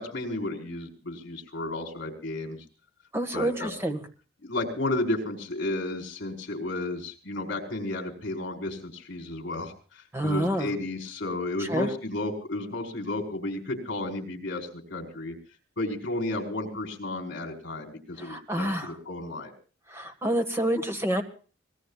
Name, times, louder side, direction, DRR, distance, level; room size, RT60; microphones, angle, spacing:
voice 1, 0.0-2.6 3.3-3.7 4.4-15.3 15.8-19.5, left 2 dB, 60° left, 2 dB, 4.9 m, -33 dB
voice 2, 3.1-4.0 10.1-10.7 11.6-11.9 18.2-18.9 19.9-21.2, right 1 dB, 15° right, 6 dB, 1.8 m, -28 dB
25.5 x 19.5 x 2.5 m, 0.40 s
head